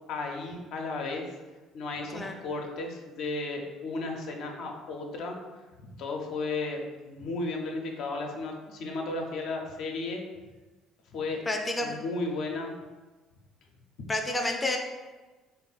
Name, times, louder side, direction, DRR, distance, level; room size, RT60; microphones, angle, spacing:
voice 1, 0.1-1.3 1.7-5.4 6.0-10.2 11.1-11.4 11.8-12.8, left 3 dB, 65° left, 1 dB, 0.6 m, -34 dB
voice 2, 11.5-12.0 14.1-14.8, left 1 dB, 20° left, 2 dB, 0.5 m, -29 dB
3.5 x 2.1 x 4.0 m, 1.2 s
hypercardioid pair, 60°, 0 cm